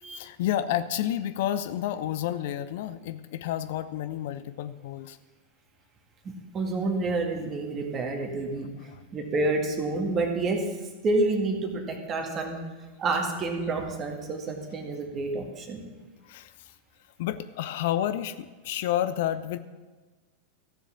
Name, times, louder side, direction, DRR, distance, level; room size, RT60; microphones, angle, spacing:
voice 1, 0.1-5.2 8.9-9.0 16.3-16.5 17.2-19.6, left 11 dB, 50° left, 12 dB, 0.5 m, -30 dB
voice 2, 6.2-8.7 9.1-10.7 11.0-12.6 13.0-15.8, right 2 dB, 25° right, 3 dB, 2.0 m, -28 dB
14.5 x 7.3 x 7.0 m, 1.3 s
figure-of-eight pair, 90°, 0 cm